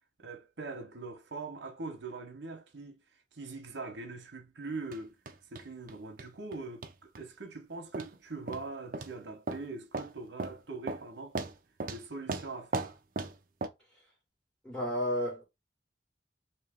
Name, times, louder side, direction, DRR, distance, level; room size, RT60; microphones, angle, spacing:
voice 1, 0.2-3.0 3.3-5.2 5.5-11.4 11.9-12.9, right 3 dB, 85° right, 0.9 m, -42 dB
sound 1, 4.9-5.0 5.3-5.9 6.2-6.6 6.8-7.2 7.9-8.2 8.5-8.7 8.9-9.1 9.5-9.6 9.9-10.1 10.4-10.6 10.9-11.1 11.3-12.0 12.3-13.4 13.6-13.7, right 3 dB, 50° right, 0.5 m, -36 dB
voice 2, 14.6-15.4, left 1 dB, 5° left, 1.8 m, -31 dB
3.2 x 2.9 x 3.5 m
head